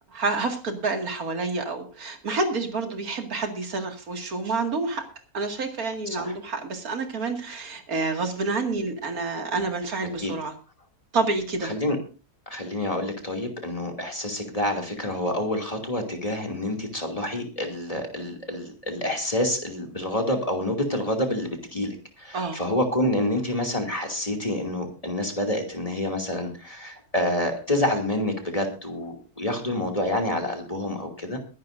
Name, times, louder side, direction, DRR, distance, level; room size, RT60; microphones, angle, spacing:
voice 1, 0.1-5.0 5.3-10.5 11.1-11.7 22.3-22.6, right 3 dB, 70° right, 5 dB, 2.6 m, -28 dB
voice 2, 11.6-12.0 12.5-31.4, left 1 dB, 25° left, 3 dB, 2.6 m, -28 dB
22.5 x 11.0 x 2.6 m, 0.35 s
omnidirectional pair, 1.6 m